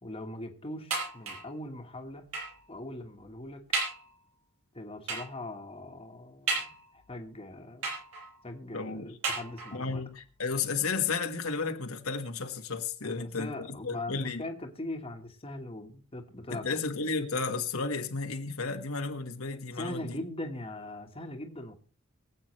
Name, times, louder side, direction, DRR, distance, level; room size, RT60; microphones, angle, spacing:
voice 1, 0.0-2.2 2.7-3.6 4.7-7.9 8.4-10.0 13.0-16.8 19.7-21.7, left 1 dB, 25° left, 1.4 m, -41 dB
sound 1, 0.9-1.6 2.3-2.6 3.2-3.3 3.7-4.1 5.1-5.4 6.5-7.1 7.8-8.4 9.2-9.9 10.7-10.8 11.1-11.2, right 3 dB, 85° right, 6.0 m, -34 dB
voice 2, 8.7-9.1 9.7-14.4 16.5-20.2, left 4 dB, 80° left, 1.5 m, -33 dB
24.0 x 8.1 x 3.2 m
head